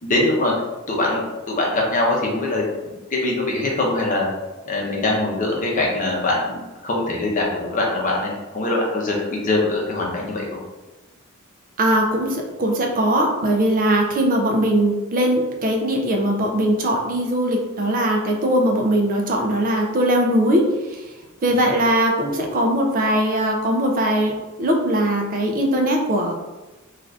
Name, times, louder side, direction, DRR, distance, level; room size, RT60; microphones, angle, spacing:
voice 1, 0.0-0.5 0.9-2.7 3.1-4.3 4.7-10.4, left 2 dB, 35° left, -3 dB, 0.7 m, -22 dB
voice 2, 11.8-21.1 21.4-26.3, right 1 dB, 40° right, 1 dB, 0.4 m, -20 dB
2.5 x 2.4 x 3.2 m, 1.1 s
head